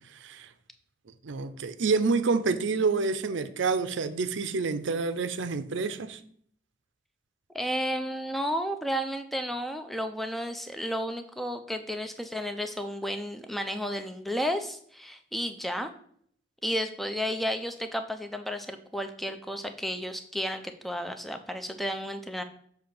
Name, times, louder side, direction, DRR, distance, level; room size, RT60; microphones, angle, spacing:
voice 1, 0.1-0.5 1.2-6.2, right 4 dB, 75° right, 12 dB, 0.5 m, -28 dB
voice 2, 7.5-15.9 16.6-22.4, equal, ahead, 7 dB, 0.4 m, -32 dB
6.9 x 2.8 x 5.8 m, 0.62 s
head